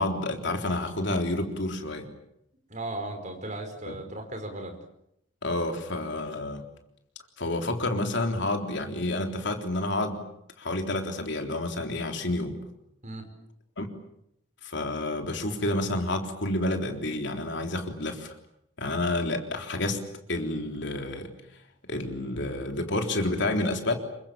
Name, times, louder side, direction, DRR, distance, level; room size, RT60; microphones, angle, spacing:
voice 1, 0.0-2.1 3.9-4.0 5.4-6.6 7.4-10.2 10.6-12.6 13.8-13.9 14.6-18.3 18.8-20.0 20.3-21.3 21.9-23.9, left 2 dB, 55° left, 4 dB, 3.7 m, -29 dB
voice 2, 2.7-4.8 13.0-13.3, right 2 dB, 35° right, 5 dB, 5.3 m, -36 dB
28.0 x 24.0 x 7.5 m, 0.78 s
head